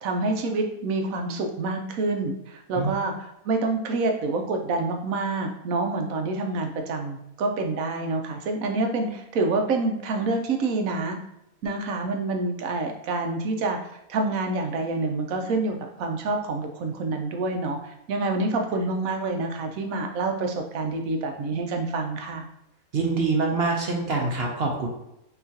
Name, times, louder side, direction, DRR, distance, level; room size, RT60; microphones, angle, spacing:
voice 1, 0.0-11.2 11.6-13.8 14.1-22.5, right 3 dB, 70° right, 3 dB, 1.1 m, -27 dB
voice 2, 22.9-24.9, right 3 dB, 50° right, 0 dB, 0.8 m, -25 dB
5.8 x 3.0 x 2.8 m, 0.83 s
omnidirectional pair, 1.5 m